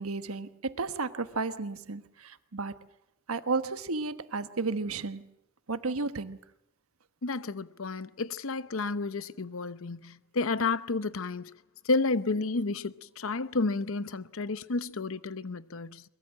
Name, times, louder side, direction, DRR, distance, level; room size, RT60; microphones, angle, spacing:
voice 1, 0.0-2.9 3.3-5.3 5.7-6.4, right 3 dB, 80° right, 1.3 m, -33 dB
voice 2, 7.2-11.5 11.8-16.0, left 3 dB, 65° left, 0.9 m, -31 dB
23.0 x 22.0 x 7.6 m
head